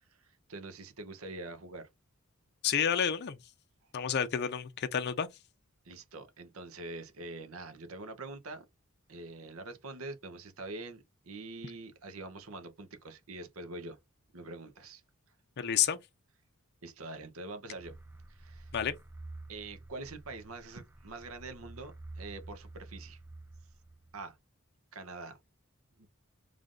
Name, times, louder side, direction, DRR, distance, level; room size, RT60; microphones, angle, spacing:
voice 1, 0.1-1.9 5.8-8.6 9.1-14.0 14.3-15.0 16.8-18.0 18.3-18.7 19.5-23.2 24.1-24.4 24.9-25.4 26.0-26.1, right 2 dB, 75° right, 0.8 m, -45 dB
voice 2, 2.6-3.4 3.9-5.3 15.6-16.0 18.7-19.0, left 8 dB, 50° left, 0.5 m, -30 dB
sound 1, 17.7-24.3, right 2 dB, 10° right, 0.4 m, -49 dB
3.3 x 2.5 x 3.7 m
head